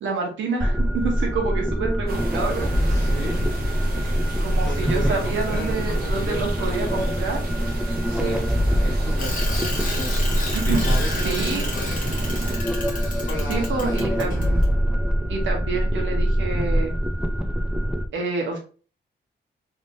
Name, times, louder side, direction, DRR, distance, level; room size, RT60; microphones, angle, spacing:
voice 1, 0.0-2.7 4.4-7.4 8.1-8.4 10.5-10.9 11.2-11.6 13.5-14.6 15.3-16.9 18.1-18.6, right 4 dB, 85° right, 1 dB, 1.2 m, -28 dB
sound 1, 0.6-18.1, equal, 5° right, 0.4 m, -24 dB
sound 2, 2.1-12.6, right 3 dB, 55° right, 0.9 m, -35 dB
voice 2, 2.8-3.4 4.6-7.2 8.0-10.1 10.7-12.3 13.2-14.3, left 2 dB, 70° left, -1 dB, 1.6 m, -36 dB
Bicycle, 9.2-14.7, left 2 dB, 45° left, 1.3 m, -32 dB
3.3 x 2.9 x 2.7 m, 0.38 s
cardioid pair, 115°, 19 cm